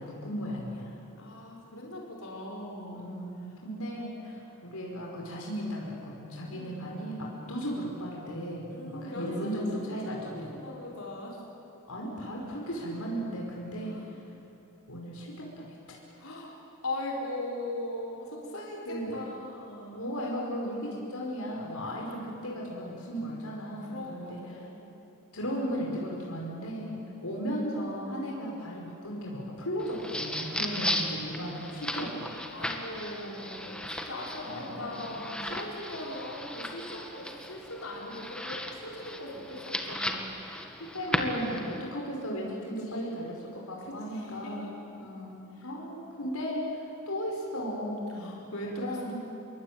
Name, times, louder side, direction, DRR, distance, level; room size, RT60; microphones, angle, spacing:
voice 1, 0.0-1.0 2.9-10.7 11.9-14.0 14.9-15.7 18.9-19.2 19.9-24.7 25.3-27.0 27.2-32.3 34.4-35.4 40.9-49.1, equal, 85° left, -2 dB, 5.6 m, -36 dB
voice 2, 1.1-3.1 6.5-6.9 7.2-7.5 8.7-11.4 13.8-14.0 16.2-16.6 16.8-20.0 21.8-22.1 23.8-24.9 26.9-27.2 28.3-28.4 32.5-40.3 42.8-43.2 43.9-44.7 48.1-49.1, left 1 dB, 70° left, -3 dB, 6.0 m, -40 dB
sound 1, 29.8-41.8, left 1 dB, 5° left, 1.9 m, -36 dB
28.5 x 23.0 x 9.1 m, 2.9 s
head